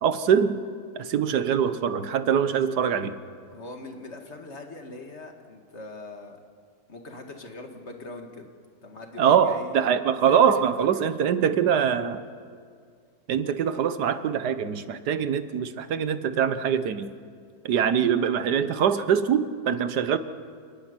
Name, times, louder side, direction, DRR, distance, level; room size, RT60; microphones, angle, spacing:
voice 1, 0.0-0.6 0.9-3.1 9.2-12.2 13.3-17.1 17.6-20.2, right 8 dB, 75° right, 12 dB, 1.5 m, -23 dB
voice 2, 3.5-6.4 6.9-8.5 8.8-9.8 10.3-11.1, left 2 dB, 40° left, 3 dB, 2.3 m, -41 dB
28.5 x 10.5 x 9.8 m, 2.1 s
omnidirectional pair, 1.8 m